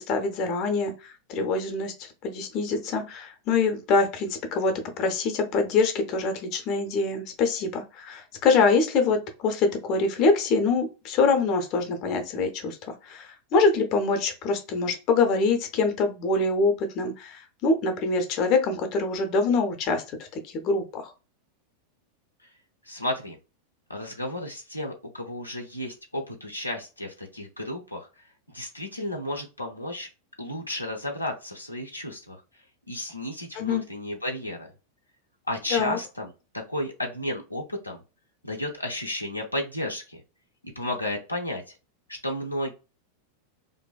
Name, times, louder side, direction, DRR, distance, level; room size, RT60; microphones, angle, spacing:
voice 1, 0.0-12.8 13.0-21.1 33.5-33.8 35.7-36.0, left 4 dB, 40° left, 5 dB, 0.5 m, -25 dB
voice 2, 22.8-23.4 23.9-30.1 30.4-32.4 32.9-34.7 35.5-38.0 38.4-40.2 40.8-41.7 42.1-42.7, left 1 dB, 85° left, 1 dB, 0.4 m, -33 dB
2.6 x 2.2 x 2.2 m, 0.30 s
figure-of-eight pair, 90°, 0 cm